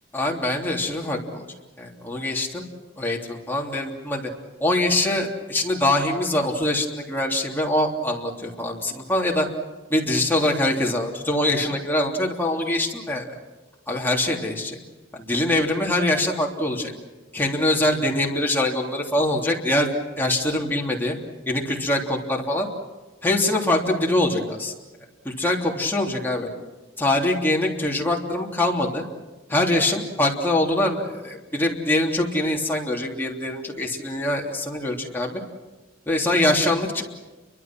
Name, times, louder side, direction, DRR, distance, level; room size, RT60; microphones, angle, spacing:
voice 1, 0.1-1.4 1.8-2.6 3.0-4.3 4.6-9.5 9.9-13.3 13.9-14.8 15.1-16.9 17.3-19.9 20.2-21.2 21.4-22.7 23.2-24.7 25.2-26.5 27.0-29.0 29.5-35.4 36.1-37.0, left 1 dB, 10° left, -2 dB, 3.3 m, -23 dB
29.5 x 24.0 x 6.2 m, 1.2 s
head